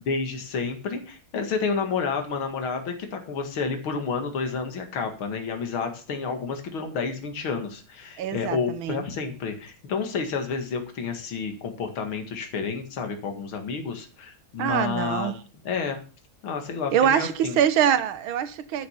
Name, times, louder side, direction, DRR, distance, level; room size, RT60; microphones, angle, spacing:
voice 1, 0.0-15.3 15.6-16.0 16.4-17.6, left 5 dB, 80° left, 2.8 m, -30 dB
voice 2, 8.2-9.0 14.6-15.3 16.9-18.9, right 9 dB, 75° right, 1.9 m, -24 dB
13.0 x 6.6 x 7.2 m
omnidirectional pair, 2.3 m